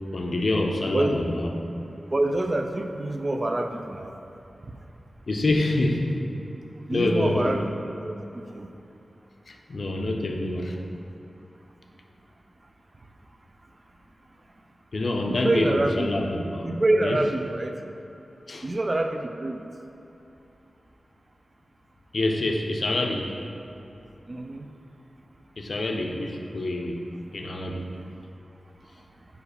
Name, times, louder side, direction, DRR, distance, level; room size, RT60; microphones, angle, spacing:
voice 1, 0.1-1.5 5.3-6.2 6.9-7.6 9.5-10.8 14.9-16.7 17.0-17.2 18.5-18.7 22.1-23.3 25.6-27.0 27.3-27.9, left 2 dB, 60° left, 2 dB, 0.6 m, -26 dB
voice 2, 0.9-1.2 2.1-4.1 6.9-7.7 8.0-8.1 8.5-8.7 15.3-16.1 16.6-17.8 18.6-19.6 24.3-24.7, right 2 dB, 35° right, 5 dB, 0.3 m, -26 dB
4.9 x 4.7 x 4.9 m, 2.9 s
wide cardioid pair, 115°, 0 cm